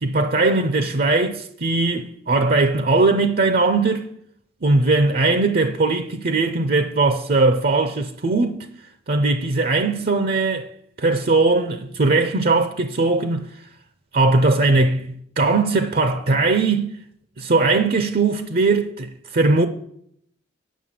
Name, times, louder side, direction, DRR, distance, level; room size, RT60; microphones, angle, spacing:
voice 1, 0.0-4.1 4.6-8.7 9.1-10.7 11.0-13.5 14.1-16.9 17.4-19.7, right 3 dB, 45° right, 0.6 m, -19 dB
9.3 x 6.4 x 7.5 m
head